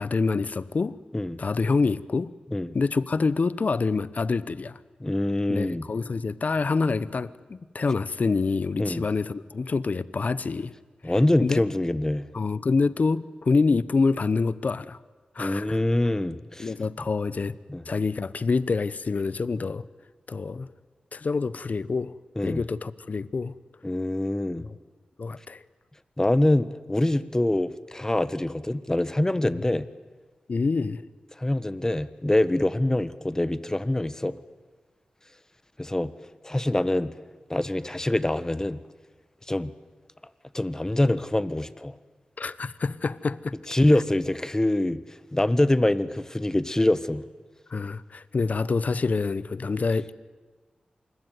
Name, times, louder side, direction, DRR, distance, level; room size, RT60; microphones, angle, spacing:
voice 1, 0.0-1.0 1.4-2.3 2.7-4.8 5.5-10.7 11.0-11.2 11.4-11.6 12.3-15.0 15.3-15.8 16.6-17.5 17.9-19.8 20.3-20.7 21.1-22.2 22.4-23.5 24.6-24.8 25.2-25.6 30.5-31.0 42.4-43.6 47.7-50.1, left 4 dB, 60° left, 0.9 m, -26 dB
voice 2, 5.0-5.8 8.8-9.0 11.0-12.3 15.4-16.7 17.7-17.8 22.4-22.6 23.8-24.7 26.2-29.8 31.4-34.4 35.8-36.1 36.4-37.1 37.5-38.8 39.5-39.7 40.5-41.9 43.7-45.0 45.3-47.2, left 1 dB, 20° left, 1.5 m, -24 dB
27.0 x 21.5 x 9.5 m
cardioid pair, 45°, 3 cm